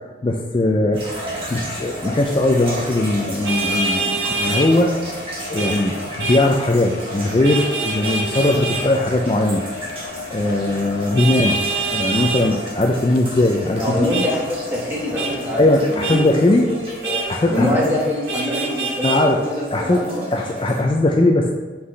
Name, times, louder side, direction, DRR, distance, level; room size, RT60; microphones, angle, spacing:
voice 1, 0.2-1.0 1.5-4.9 5.5-9.6 10.3-11.6 11.9-14.1 15.6-16.7 17.3-18.0 19.0-21.5, left 2 dB, 30° left, 2 dB, 0.3 m, -19 dB
sound 1, 0.9-20.8, right 1 dB, 30° right, 1.4 m, -34 dB
sound 2, 1.2-16.2, left 4 dB, 80° left, 0.8 m, -38 dB
Vehicle horn car horn honking, 3.4-4.7 5.6-5.8 6.2-6.4 7.4-8.8 11.2-12.4 14.1-14.3 15.2-15.3 16.0-16.2 17.0-17.3 18.3-19.2, right 3 dB, 85° right, 1.6 m, -24 dB
voice 2, 13.8-16.3 16.6-17.2 17.5-20.4, left 1 dB, 10° right, -6 dB, 1.4 m, -24 dB
6.0 x 5.6 x 3.2 m, 1.3 s
head